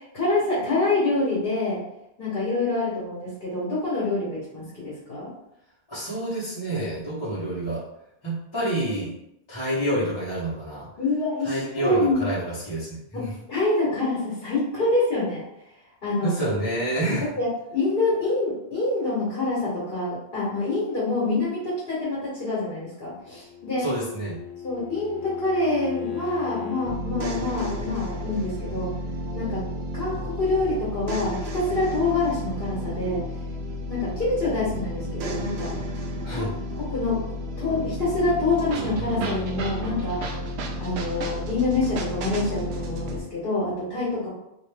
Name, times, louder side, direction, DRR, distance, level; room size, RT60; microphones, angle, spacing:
voice 1, 0.0-1.8 2.2-5.3 11.0-12.2 13.1-13.2 13.5-15.4 16.0-16.3 17.4-23.8 24.6-28.9 29.3-29.6 29.9-33.2 33.9-35.7 36.3-37.2 37.6-40.2 40.8-44.3, left 2 dB, 55° left, -7 dB, 1.3 m, -26 dB
voice 2, 5.9-7.8 8.2-9.1 9.5-10.9 11.4-13.3 16.2-17.3 23.8-24.4 36.2-36.5, right 1 dB, 25° left, -10 dB, 1.0 m, -28 dB
Bowed string instrument, 23.3-27.0, left 7 dB, 75° left, 0.8 m, -35 dB
sound 1, 26.8-43.2, equal, 75° right, 0.8 m, -32 dB
sound 2, 27.8-28.0 30.1-30.3 30.6-30.7, left 1 dB, 25° right, 0.9 m, -43 dB
2.8 x 2.5 x 3.4 m, 0.82 s
omnidirectional pair, 1.1 m